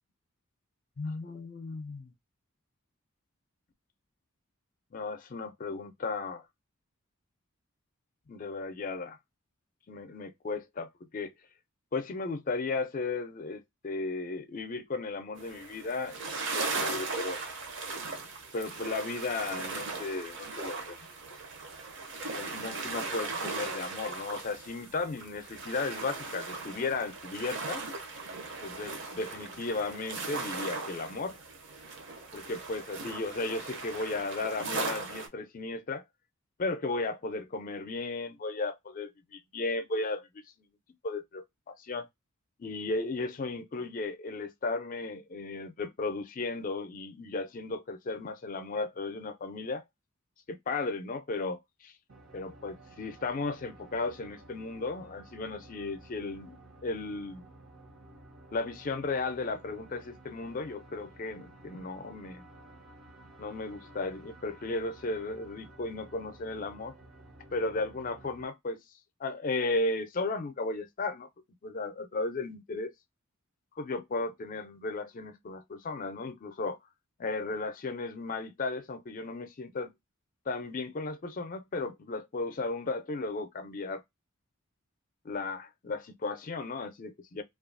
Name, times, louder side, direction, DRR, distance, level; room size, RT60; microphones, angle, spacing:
voice 1, 1.0-2.1 4.9-6.4 8.3-9.2 9.9-10.9 11.1-11.3 11.9-16.2 16.5-17.4 18.5-21.0 22.4-27.8 28.6-31.4 32.3-36.0 36.6-40.4 41.0-42.1 42.6-49.8 50.5-51.9 52.3-56.6 56.8-57.4 58.5-62.4 63.4-66.9 67.5-68.8 69.2-71.3 71.6-72.9 73.8-76.8 77.2-79.9 80.5-84.0 85.2-87.4, left 3 dB, 40° left, 0.4 m, -35 dB
sound 1, 15.4-35.3, right 3 dB, 55° right, 0.6 m, -38 dB
sound 2, 52.1-68.4, right 2 dB, 75° right, 1.0 m, -53 dB
2.6 x 2.3 x 2.5 m
head